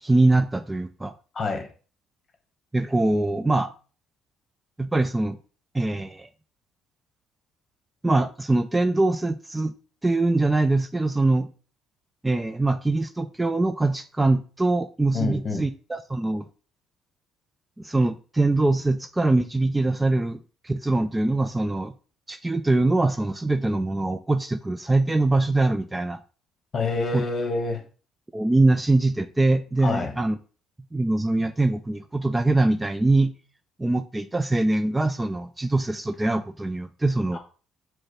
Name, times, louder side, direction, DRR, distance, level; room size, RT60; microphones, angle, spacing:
voice 1, 0.0-1.1 2.7-3.7 4.8-5.4 5.7-6.3 8.0-9.7 10.0-11.5 12.2-16.4 17.8-21.9 22.3-26.2 27.1-27.2 28.3-30.4 30.9-33.3 33.8-37.4, right 2 dB, 15° right, 0.3 m, -23 dB
voice 2, 1.3-1.7 15.1-15.6 26.7-27.8 29.8-30.1 37.3-37.4, left 3 dB, 40° left, 1.2 m, -27 dB
4.7 x 2.1 x 4.4 m
supercardioid pair, 65°, 0 cm